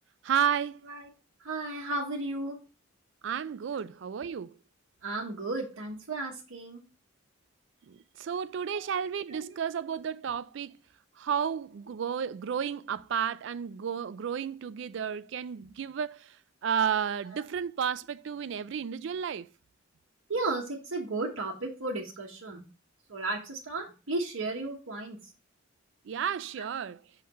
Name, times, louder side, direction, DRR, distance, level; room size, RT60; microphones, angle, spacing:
voice 1, 0.2-0.8 3.2-4.6 7.9-10.8 11.2-16.4 16.6-19.5 26.0-27.0, right 7 dB, 60° right, 0.3 m, -32 dB
voice 2, 1.4-2.6 5.0-6.8 8.7-8.8 9.3-9.6 17.2-17.4 20.3-22.6 23.1-25.2 26.6-26.7, right 2 dB, 80° right, 1.1 m, -34 dB
5.8 x 5.7 x 3.0 m
head